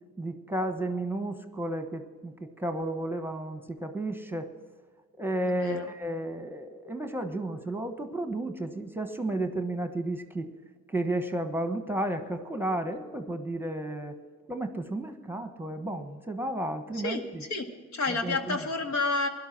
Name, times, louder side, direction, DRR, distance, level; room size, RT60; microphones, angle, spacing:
voice 1, 0.2-4.5 5.2-10.5 10.9-14.2 14.5-17.4 18.1-18.7, right 1 dB, 5° right, 7 dB, 1.2 m, -32 dB
voice 2, 5.4-5.9 16.9-17.2 17.5-19.3, left 3 dB, 65° left, 4 dB, 2.0 m, -30 dB
17.0 x 12.0 x 6.0 m, 1.5 s
cardioid pair, 90°, 30 cm